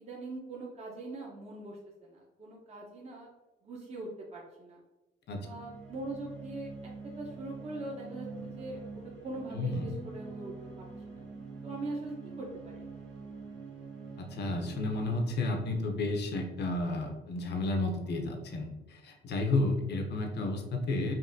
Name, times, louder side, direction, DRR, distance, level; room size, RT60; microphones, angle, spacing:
voice 1, 0.0-3.3 3.6-4.8 5.4-8.8 9.2-11.2 11.6-12.8, right 2 dB, 35° right, -4 dB, 0.9 m, -42 dB
sound 1, 5.4-16.9, right 4 dB, 65° right, 1.3 m, -46 dB
voice 2, 9.5-9.9 14.2-21.1, left 2 dB, 60° left, 3 dB, 0.8 m, -32 dB
5.3 x 2.7 x 2.7 m, 1.1 s
cardioid pair, 90°, 20 cm